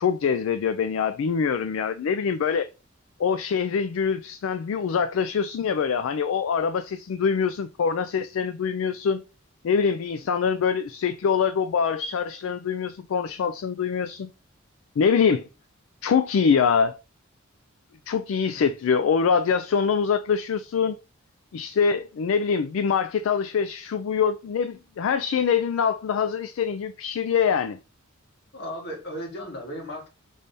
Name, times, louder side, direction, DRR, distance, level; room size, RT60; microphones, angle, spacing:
voice 1, 0.0-2.7 3.2-9.2 9.6-14.3 15.0-15.5 16.0-17.0 18.1-21.0 21.5-27.8, left 6 dB, 70° left, 0.3 m, -24 dB
voice 2, 28.5-30.1, equal, 50° left, 1.6 m, -36 dB
5.3 x 3.3 x 2.6 m
head